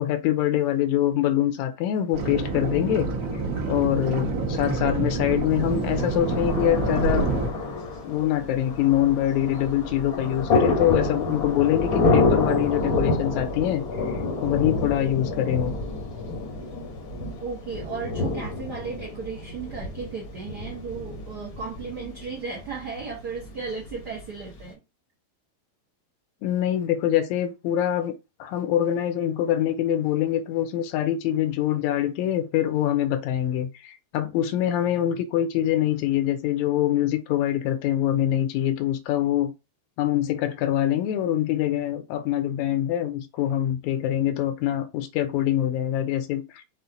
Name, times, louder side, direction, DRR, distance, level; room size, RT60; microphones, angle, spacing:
voice 1, 0.0-3.1 3.7-7.3 8.0-13.8 14.4-15.7 26.4-39.5 40.0-46.6, left 12 dB, 85° left, 1.9 m, -24 dB
sound 1, 2.1-7.5, right 3 dB, 55° right, 1.7 m, -27 dB
Thunder, 5.7-24.7, left 3 dB, 60° left, 1.0 m, -28 dB
voice 2, 17.4-24.8, right 5 dB, 70° right, 0.9 m, -35 dB
5.5 x 2.5 x 3.9 m
omnidirectional pair, 3.3 m